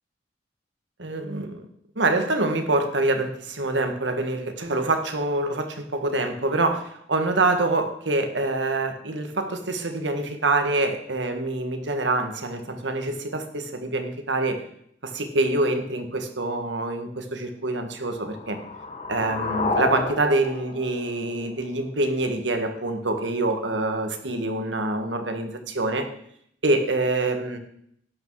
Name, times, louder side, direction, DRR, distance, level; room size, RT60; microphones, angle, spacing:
voice 1, 1.0-1.7 1.9-14.6 15.0-18.6 19.1-26.1 26.6-27.6, right 2 dB, 80° right, 6 dB, 1.6 m, -25 dB
sound 1, 18.0-22.0, left 3 dB, 35° left, 1.1 m, -31 dB
11.5 x 8.9 x 4.7 m, 0.68 s
head